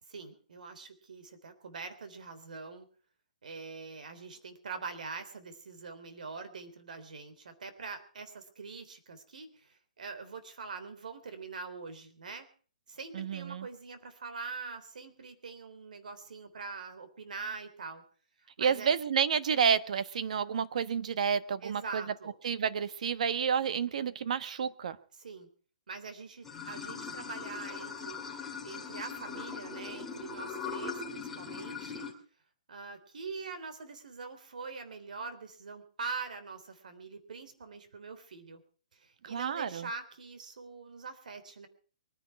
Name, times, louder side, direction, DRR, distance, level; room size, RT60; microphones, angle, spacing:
voice 1, 0.1-2.9 3.4-12.5 12.9-18.0 18.4-18.9 21.6-22.3 25.1-25.5 25.9-32.1 32.7-38.6 38.9-41.7, right 4 dB, 80° right, 10 dB, 3.5 m, -44 dB
voice 2, 13.1-13.7 18.6-22.0 22.4-25.0 39.2-39.9, right 7 dB, 60° right, 14 dB, 1.2 m, -30 dB
Water / Sink (filling or washing), 26.4-32.1, left 5 dB, 5° left, 2.9 m, -40 dB
23.5 x 10.5 x 4.8 m, 0.41 s
hypercardioid pair, 160°, 4 cm